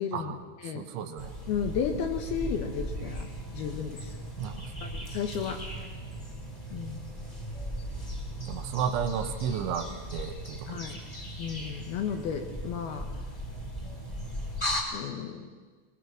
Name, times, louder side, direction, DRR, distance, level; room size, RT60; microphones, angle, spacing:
voice 1, 0.0-0.9 1.5-3.3 3.5-4.2 4.8-5.7 6.7-7.1 10.7-11.0 11.4-13.1 14.9-15.5, left 7 dB, 70° left, 5 dB, 2.5 m, -33 dB
voice 2, 0.8-1.4 4.4-4.9 8.4-10.8, right 8 dB, 80° right, 7 dB, 3.5 m, -33 dB
sound 1, 1.2-14.8, equal, 15° left, 1.4 m, -37 dB
22.5 x 21.0 x 6.2 m, 1.4 s
omnidirectional pair, 5.5 m